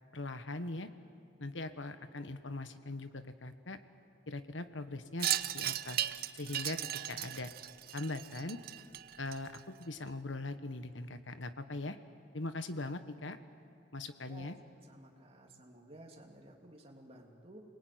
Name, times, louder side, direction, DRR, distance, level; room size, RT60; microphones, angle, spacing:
voice 1, 0.1-0.9 1.4-3.8 4.3-6.0 6.3-7.5 7.9-8.6 9.2-12.0 12.3-13.4 13.9-14.6, left 2 dB, 90° left, 10 dB, 1.4 m, -41 dB
Wind chime, 5.2-9.8, right 12 dB, 55° right, 0.6 m, -37 dB
voice 2, 14.9-17.6, right 1 dB, 30° right, 1 dB, 3.0 m, -54 dB
28.5 x 21.0 x 9.6 m, 2.4 s
head